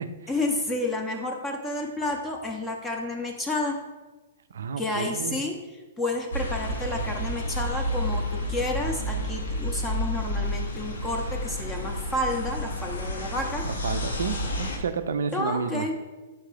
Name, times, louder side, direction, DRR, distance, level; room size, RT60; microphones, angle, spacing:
voice 1, 0.3-3.8 4.8-5.6 6.0-13.6 15.3-16.0, left 2 dB, 15° left, 2 dB, 0.5 m, -30 dB
voice 2, 4.5-5.4 13.6-15.9, right 6 dB, 70° right, 10 dB, 0.3 m, -31 dB
sound 1, 6.3-14.8, left 1 dB, 80° left, 0.8 m, -30 dB
4.4 x 3.6 x 3.3 m, 1.2 s
hypercardioid pair, 120°, 0 cm